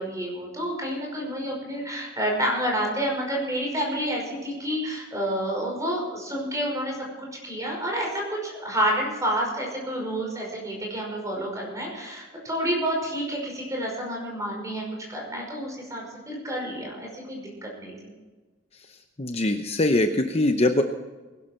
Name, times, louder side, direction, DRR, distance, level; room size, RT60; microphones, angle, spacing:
voice 1, 0.0-18.1, equal, 15° right, -1 dB, 5.4 m, -29 dB
voice 2, 19.2-20.8, left 2 dB, 30° left, 6 dB, 0.8 m, -22 dB
20.0 x 12.0 x 4.5 m, 1.2 s
head